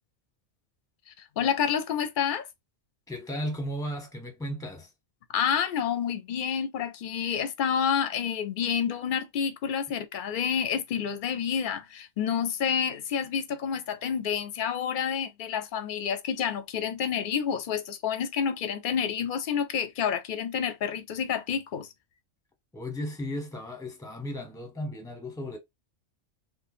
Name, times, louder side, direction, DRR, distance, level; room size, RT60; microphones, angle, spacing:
voice 1, 1.4-2.5 5.3-21.9, left 7 dB, 55° left, 0.7 m, -29 dB
voice 2, 3.1-4.9 22.7-25.6, equal, 5° left, 0.9 m, -35 dB
3.2 x 2.1 x 4.2 m
omnidirectional pair, 1.2 m